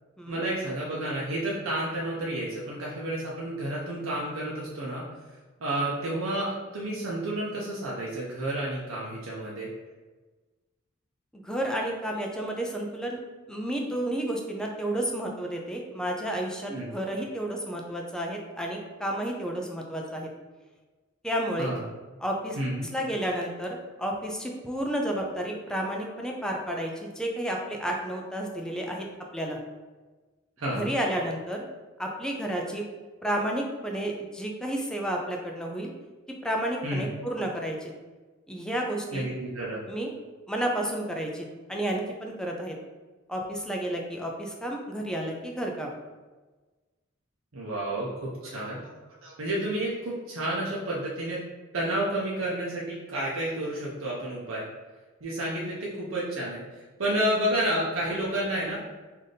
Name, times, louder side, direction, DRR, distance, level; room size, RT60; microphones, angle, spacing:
voice 1, 0.3-5.0 5.6-9.7 16.7-16.9 21.6-21.8 22.6-22.9 30.6-30.9 36.8-37.0 39.1-39.8 47.5-48.8 49.2-51.4 51.7-54.6 55.2-58.8, right 1 dB, 75° right, -5 dB, 0.7 m, -30 dB
voice 2, 11.3-13.2 13.5-20.3 21.2-21.7 22.2-22.6 22.9-29.0 29.3-29.6 30.7-31.6 32.0-32.8 33.2-35.9 36.4-37.9 38.5-39.3 39.9-40.1 40.5-42.8 43.3-46.0, right 1 dB, 5° left, 0 dB, 0.4 m, -31 dB
3.3 x 2.6 x 4.0 m, 1.3 s
head